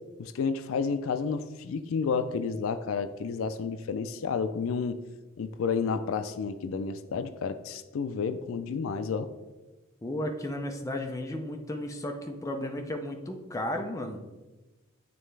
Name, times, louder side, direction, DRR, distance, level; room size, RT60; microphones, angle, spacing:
voice 1, 0.2-5.0 5.4-9.3, left 5 dB, 75° left, 11 dB, 0.4 m, -31 dB
voice 2, 10.0-14.2, left 1 dB, 15° left, 4 dB, 0.5 m, -34 dB
9.1 x 3.3 x 3.3 m, 1.1 s
head